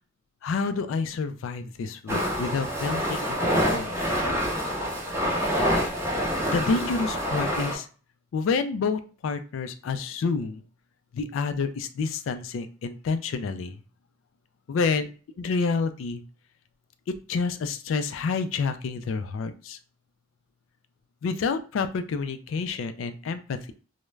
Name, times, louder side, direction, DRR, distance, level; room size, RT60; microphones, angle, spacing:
voice 1, 0.4-4.0 6.5-7.9 8.3-10.6 11.1-13.8 14.7-15.1 15.4-16.2 17.3-19.8 21.2-23.7, left 4 dB, 80° left, 10 dB, 0.3 m, -28 dB
sound 1, 2.1-7.8, equal, 15° right, 0.7 m, -26 dB
2.3 x 2.1 x 3.1 m, 0.37 s
head